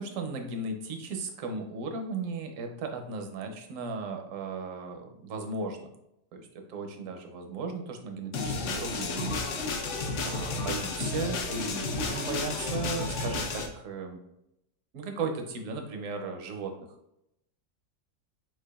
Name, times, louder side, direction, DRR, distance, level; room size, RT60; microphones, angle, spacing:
voice 1, 0.0-5.8 6.3-9.4 9.6-14.2 14.9-16.7, right 4 dB, 60° right, 4 dB, 0.9 m, -36 dB
sound 1, 8.3-13.7, left 3 dB, 65° left, 0.7 m, -32 dB
4.7 x 4.5 x 2.3 m, 0.82 s
omnidirectional pair, 1.9 m